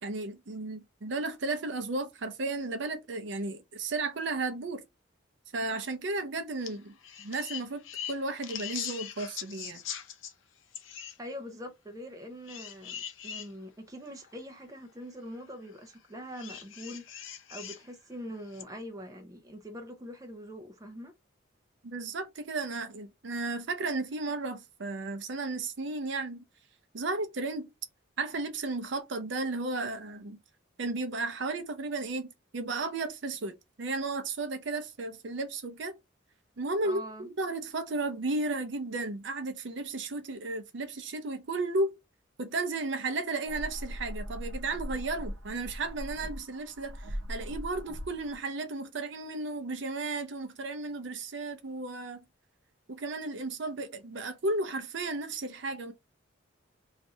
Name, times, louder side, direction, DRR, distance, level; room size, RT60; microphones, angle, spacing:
voice 1, 0.0-4.8 5.5-9.8 21.8-26.4 26.9-27.7 28.2-30.4 30.8-35.9 36.6-41.9 42.4-52.2 52.9-55.9, right 3 dB, 60° right, 0.6 m, -34 dB
sound 1, 6.6-6.8 7.0-10.3 10.7-11.2 12.5-13.5 14.2-14.3 16.3-17.8 18.5-18.6, left 9 dB, 70° left, 0.6 m, -41 dB
voice 2, 11.2-21.1 36.8-37.3, equal, 15° right, 0.5 m, -43 dB
sound 2, 43.5-48.4, equal, 80° right, 0.9 m, -40 dB
2.6 x 2.5 x 4.2 m
head